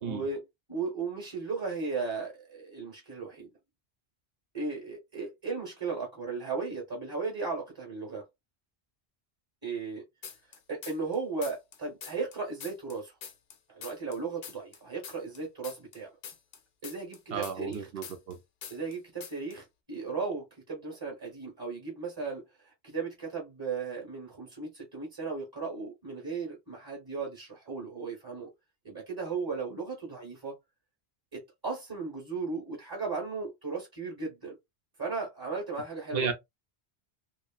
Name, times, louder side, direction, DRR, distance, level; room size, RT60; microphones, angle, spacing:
voice 1, 0.0-0.4 0.7-3.5 4.5-8.2 9.6-10.0 10.7-13.1 13.7-16.1 16.8-17.9 18.7-28.5 28.8-30.5 31.3-34.6 35.0-36.3, right 4 dB, 20° right, 0.9 m, -36 dB
sound 1, 10.2-11.2 11.4-14.2 14.4-18.4 18.6-19.0 19.2-19.6, left 7 dB, 70° left, 0.8 m, -44 dB
voice 2, 17.3-18.4 36.1-36.3, right 6 dB, 65° right, 0.8 m, -33 dB
3.0 x 2.3 x 2.2 m
omnidirectional pair, 1.1 m